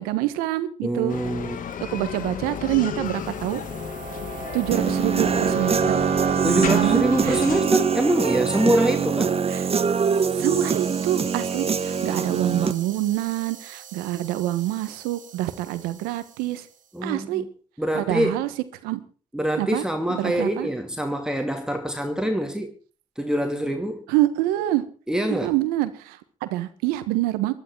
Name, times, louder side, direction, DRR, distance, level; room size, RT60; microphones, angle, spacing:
voice 1, 0.0-1.1 1.9-3.6 4.5-6.0 6.4-7.4 9.5-9.7 10.4-16.7 17.0-17.4 17.9-18.5 18.8-19.0 19.6-19.9 20.1-20.7 24.1-24.8 25.3-27.5, right 15 dB, 85° right, 1.3 m, -26 dB
voice 2, 0.8-1.6 6.4-9.4 16.9-17.5 17.8-18.4 19.3-22.7 23.2-24.1 25.1-25.5, right 1 dB, 5° right, 2.4 m, -24 dB
Bicycle, 1.1-7.6, left 7 dB, 65° left, 1.5 m, -33 dB
sound 1, 3.2-16.6, right 9 dB, 65° right, 2.7 m, -36 dB
Human voice / Guitar, 4.7-12.7, right 6 dB, 40° right, 1.3 m, -23 dB
20.5 x 11.5 x 4.7 m
hypercardioid pair, 50°, 15 cm